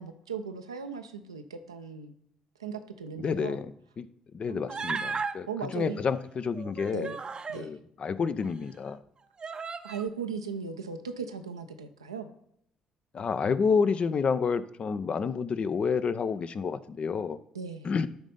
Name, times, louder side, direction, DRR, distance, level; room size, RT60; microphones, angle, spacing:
voice 1, 0.0-2.2 2.6-3.6 4.5-5.1 5.5-6.0 6.9-7.2 7.5-7.8 9.8-12.3 17.5-17.9, right 5 dB, 90° right, 7 dB, 0.6 m, -38 dB
voice 2, 3.2-4.1 4.3-5.5 5.7-7.2 7.6-9.0 13.1-17.4 17.8-18.1, left 5 dB, 45° left, 13 dB, 0.5 m, -29 dB
Human voice, 4.7-5.3 6.5-7.6 8.4-8.5 9.4-10.1, right 5 dB, 35° right, 0.6 m, -35 dB
11.5 x 4.1 x 5.2 m, 0.73 s
figure-of-eight pair, 50°, 3 cm